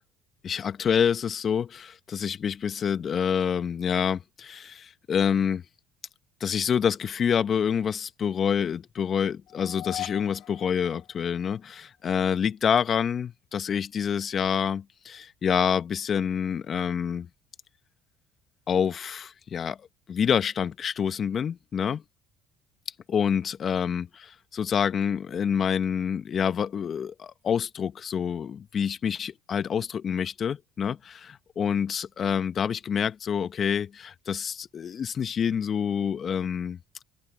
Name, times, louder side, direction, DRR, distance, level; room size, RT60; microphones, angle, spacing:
voice 1, 0.4-5.6 6.4-17.3 18.7-22.0 23.1-36.8, left 7 dB, 45° left, 1.5 m, -27 dB
sound 1, 9.5-11.7, left 14 dB, 65° left, 4.0 m, -40 dB
open air
hypercardioid pair, 70°, 0 cm